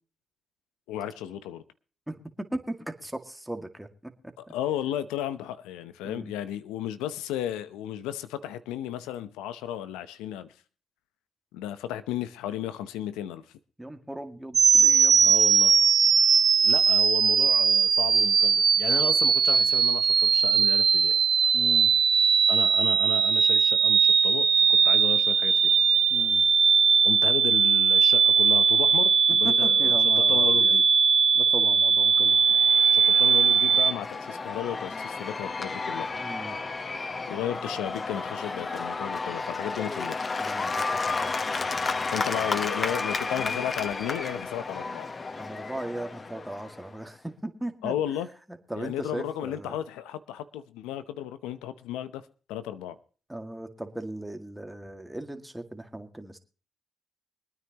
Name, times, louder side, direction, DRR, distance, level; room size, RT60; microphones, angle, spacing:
voice 1, 0.9-1.6 4.4-10.5 11.5-13.4 15.2-15.8 16.6-21.2 22.5-25.5 27.0-30.8 32.9-36.1 37.3-40.2 42.1-45.1 47.8-48.3 48.7-52.2 52.5-53.0, left 11 dB, 85° left, 0.7 m, -34 dB
voice 2, 2.5-4.1 4.5-4.6 6.0-6.3 13.8-15.3 21.5-21.9 26.1-26.4 29.3-30.8 31.3-32.6 36.1-36.6 40.4-42.2 42.8-42.9 45.3-47.9 48.7-49.8 53.3-56.4, right 1 dB, 5° right, 2.0 m, -38 dB
sound 1, 14.5-33.9, right 6 dB, 50° right, 0.9 m, -20 dB
Cheering / Applause / Crowd, 32.2-47.0, left 4 dB, 35° left, 1.0 m, -32 dB
24.5 x 9.6 x 2.9 m
supercardioid pair, 65°, 0 cm